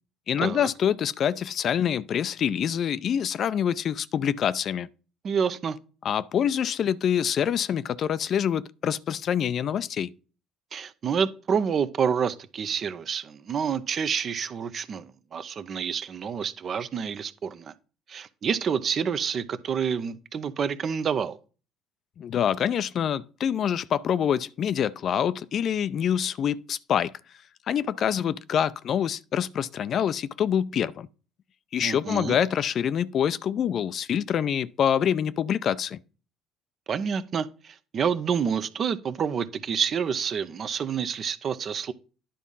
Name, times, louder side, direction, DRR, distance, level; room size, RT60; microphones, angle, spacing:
voice 1, 0.3-4.9 6.0-10.1 22.2-27.1 27.7-31.1 31.7-36.0, left 9 dB, 55° left, 0.5 m, -26 dB
voice 2, 5.2-5.8 10.7-17.7 18.1-21.4 31.8-32.4 36.9-41.9, right 7 dB, 50° right, 0.7 m, -28 dB
10.0 x 3.6 x 5.5 m
hypercardioid pair, 65°, 0 cm